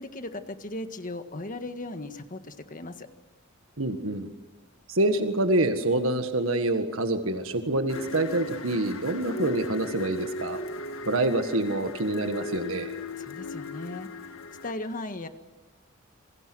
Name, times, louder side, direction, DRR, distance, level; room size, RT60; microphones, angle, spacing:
voice 1, 0.0-3.1 13.1-15.3, left 2 dB, 40° left, 8 dB, 1.7 m, -37 dB
voice 2, 3.8-4.3 4.9-10.6 11.0-13.0, right 2 dB, 85° right, 7 dB, 1.7 m, -26 dB
sound 1, 7.9-14.7, left 2 dB, 85° left, 1.8 m, -37 dB
27.5 x 23.5 x 6.3 m, 1.2 s
head